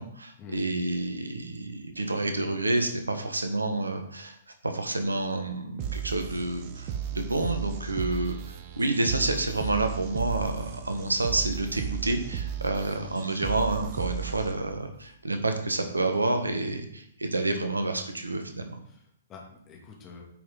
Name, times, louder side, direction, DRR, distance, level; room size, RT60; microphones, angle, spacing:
voice 1, 0.0-4.4 4.6-18.7, right 2 dB, 80° right, 6 dB, 1.4 m, -29 dB
sound 1, 5.8-14.8, right 8 dB, 35° right, 0.9 m, -35 dB
voice 2, 18.9-20.2, left 5 dB, 25° left, 0 dB, 2.1 m, -47 dB
9.4 x 5.5 x 4.0 m, 0.68 s
figure-of-eight pair, 120°, 0 cm